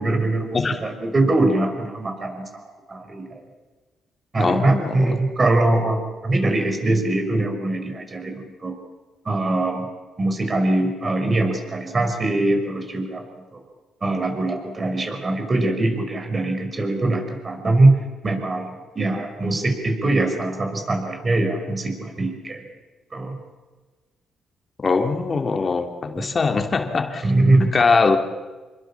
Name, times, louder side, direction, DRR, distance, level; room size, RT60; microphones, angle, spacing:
voice 1, 0.0-2.4 2.9-3.4 4.3-8.7 9.3-9.9 10.2-13.2 13.5-13.6 14.0-18.0 18.2-22.6 23.1-23.4 27.2-27.7, right 2 dB, 30° right, 5 dB, 5.6 m, -22 dB
voice 2, 4.4-5.2 24.8-27.2 27.6-28.2, left 4 dB, 35° left, 5 dB, 2.8 m, -21 dB
28.0 x 23.0 x 7.3 m, 1.3 s
cardioid pair, 90°, 0 cm